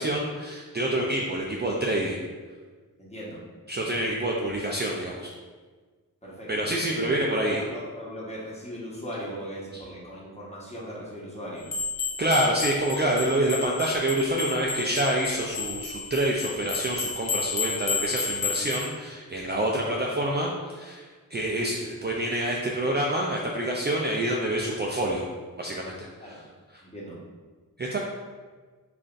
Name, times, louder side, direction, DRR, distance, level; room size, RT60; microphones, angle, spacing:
voice 1, 0.0-2.2 3.7-5.3 6.5-7.6 9.7-9.8 12.2-25.3 25.6-26.4 27.8-28.0, right 1 dB, 30° right, -2 dB, 0.4 m, -27 dB
voice 2, 3.0-3.4 6.2-6.9 7.2-11.7 26.2-26.4 26.8-27.2, equal, 20° left, -6 dB, 1.1 m, -38 dB
sound 1, 11.7-18.9, left 5 dB, 45° left, 0.7 m, -32 dB
3.3 x 2.5 x 3.8 m, 1.4 s
wide cardioid pair, 75°, 36 cm